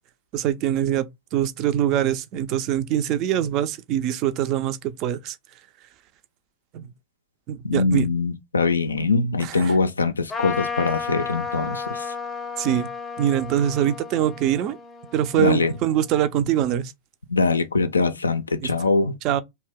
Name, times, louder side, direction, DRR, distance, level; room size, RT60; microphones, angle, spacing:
voice 1, 0.3-5.4 6.7-6.9 7.5-8.1 9.4-9.8 12.6-12.9 13.2-14.8 15.1-16.9 18.6-18.7 19.2-19.4, right 11 dB, 40° right, 0.4 m, -23 dB
voice 2, 7.6-12.0 15.4-15.7 17.3-19.1, left 3 dB, 75° left, 0.4 m, -22 dB
Trumpet, 10.3-16.1, left 5 dB, 20° left, 0.6 m, -33 dB
2.7 x 2.1 x 3.5 m
figure-of-eight pair, 90°, 0 cm